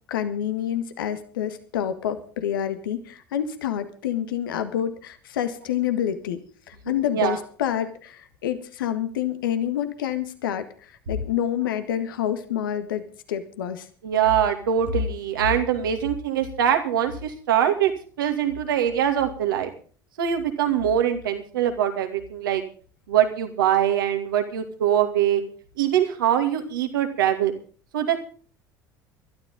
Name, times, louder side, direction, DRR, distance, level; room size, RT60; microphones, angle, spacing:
voice 1, 0.1-6.4 6.7-13.9, left 10 dB, 80° left, 10 dB, 1.7 m, -28 dB
voice 2, 14.0-17.9 18.2-19.7 20.2-22.6 23.1-25.4 25.8-27.5 27.9-28.2, right 9 dB, 80° right, 5 dB, 2.5 m, -23 dB
20.0 x 13.0 x 3.8 m, 0.41 s
hypercardioid pair, 70°, 11 cm